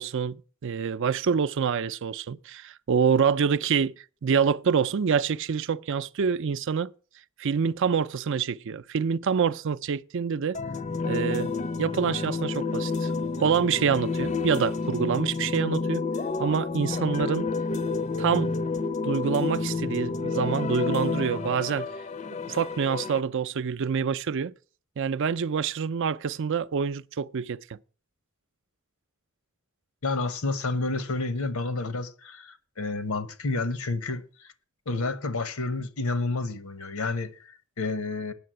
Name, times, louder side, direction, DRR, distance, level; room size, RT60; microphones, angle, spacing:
voice 1, 0.0-6.9 7.4-10.6 11.0-11.5 11.8-13.1 13.4-16.0 16.4-17.5 18.2-18.5 19.0-21.9 22.5-24.5 25.0-27.6, right 6 dB, 60° right, 0.5 m, -26 dB
sound 1, 10.5-23.2, left 4 dB, 35° left, 0.5 m, -30 dB
voice 2, 30.0-34.5 34.9-38.3, left 3 dB, 90° left, 1.1 m, -30 dB
9.4 x 6.8 x 7.6 m
head